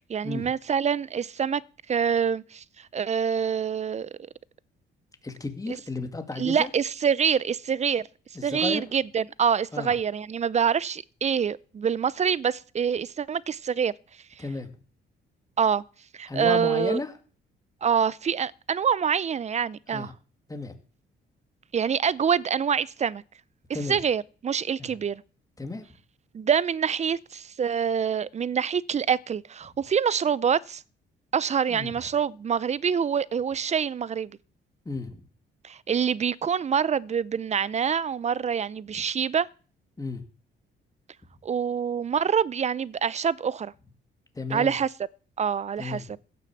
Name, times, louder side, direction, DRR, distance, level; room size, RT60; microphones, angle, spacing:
voice 1, 0.1-1.6 1.9-4.1 6.4-8.1 8.4-13.9 15.6-15.8 16.1-17.0 17.8-20.1 21.7-23.2 23.9-25.2 26.3-30.8 31.3-34.3 35.6-39.5 41.4-43.7 44.5-44.9 45.4-46.0, right 7 dB, 35° right, 0.5 m, -26 dB
voice 2, 5.2-6.7 8.3-8.9 9.7-10.0 14.4-14.7 16.3-17.1 19.9-20.1 20.5-20.7 23.7-24.0 24.8-25.0 25.6-25.8 31.7-32.0 34.8-35.3 40.0-40.3 44.3-44.8 45.8-46.1, left 3 dB, 15° left, 2.3 m, -33 dB
16.0 x 6.8 x 7.2 m
cardioid pair, 90°, 20 cm